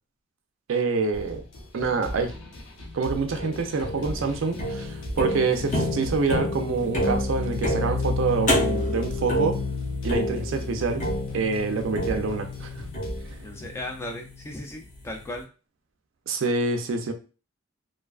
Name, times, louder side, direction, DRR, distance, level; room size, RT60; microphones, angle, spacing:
voice 1, 0.7-1.4 1.7-2.3 2.9-9.6 10.0-11.0 11.3-12.8 16.3-17.1, right 4 dB, 65° right, 6 dB, 0.4 m, -26 dB
sound 1, 1.1-13.5, equal, 85° left, 0.7 m, -39 dB
sound 2, 3.4-14.6, left 1 dB, 40° left, 0.8 m, -29 dB
voice 2, 13.4-15.5, left 1 dB, 15° left, 2 dB, 0.3 m, -36 dB
2.4 x 2.3 x 2.3 m, 0.35 s
head